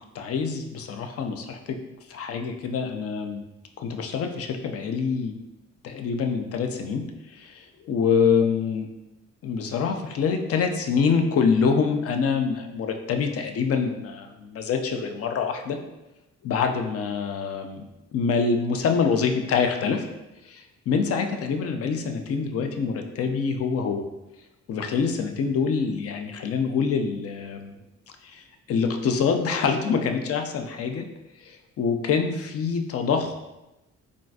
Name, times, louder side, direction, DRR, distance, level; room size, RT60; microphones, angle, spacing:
voice 1, 0.1-1.8 2.1-3.4 3.8-5.3 5.8-7.0 7.3-8.9 9.4-15.8 16.4-17.8 18.1-20.0 20.5-24.0 24.7-27.7 28.2-28.4 28.7-31.1 31.4-33.4, left 5 dB, 50° left, 5 dB, 0.4 m, -25 dB
3.8 x 2.4 x 2.3 m, 0.97 s
cardioid pair, 90°, 30 cm